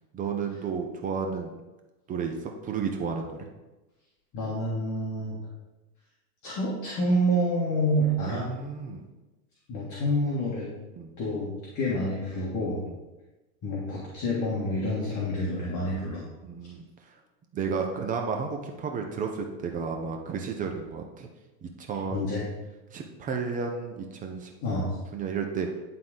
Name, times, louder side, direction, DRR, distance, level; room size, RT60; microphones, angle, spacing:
voice 1, 0.1-1.5 2.1-3.5 8.2-9.0 11.0-11.1 12.9-13.0 16.4-16.8 17.5-21.3 21.6-22.5 22.9-24.5 25.1-25.7, right 5 dB, 20° right, 3 dB, 0.4 m, -32 dB
voice 2, 4.3-5.4 6.4-8.4 9.7-10.7 11.2-12.8 13.6-16.2 22.1-22.4 24.6-25.0, equal, 35° left, -5 dB, 1.7 m, -28 dB
10.5 x 3.8 x 3.9 m, 1.1 s
hypercardioid pair, 120°, 49 cm